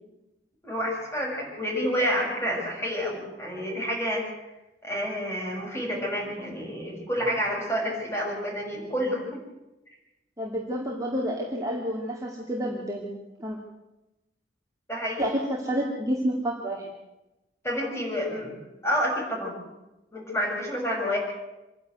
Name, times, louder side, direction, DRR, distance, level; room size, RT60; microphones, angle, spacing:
voice 1, 0.6-4.2 4.8-9.4 14.9-15.2 17.6-19.6 20.1-21.2, equal, 15° left, -2 dB, 6.7 m, -29 dB
voice 2, 10.4-13.1 13.4-13.6 15.2-16.9, equal, 20° right, -2 dB, 2.3 m, -29 dB
26.0 x 11.0 x 9.4 m, 1.0 s
head